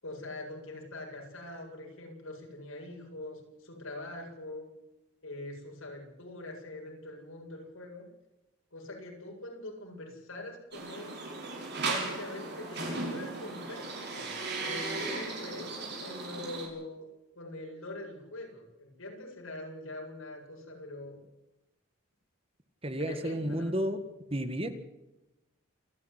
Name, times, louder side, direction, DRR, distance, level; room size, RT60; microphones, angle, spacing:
voice 1, 0.0-4.7 5.2-8.1 8.7-11.2 11.8-14.3 14.6-17.1 17.3-21.2 23.0-23.8, left 2 dB, 85° left, 0 dB, 7.9 m, -43 dB
sound 1, 10.7-16.7, right 3 dB, 55° right, 6.6 m, -36 dB
voice 2, 22.8-24.0 24.3-24.7, right 1 dB, 30° right, 9 dB, 1.8 m, -31 dB
28.0 x 11.0 x 9.8 m, 0.96 s
head